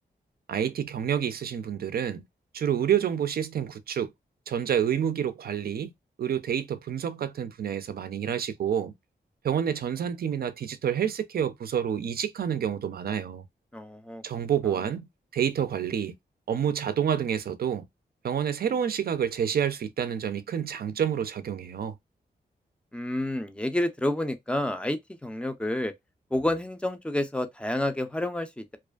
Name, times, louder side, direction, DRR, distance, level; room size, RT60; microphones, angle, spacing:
voice 1, 0.5-2.2 2.5-4.1 4.5-5.9 6.2-8.9 9.4-13.4 14.2-15.0 15.3-16.2 16.5-17.9 18.2-21.9, right 8 dB, 60° right, 0.4 m, -28 dB
voice 2, 13.7-14.2 22.9-25.9 26.3-28.8, left 1 dB, 5° left, 0.4 m, -29 dB
2.4 x 2.4 x 2.2 m
wide cardioid pair, 110°, 18 cm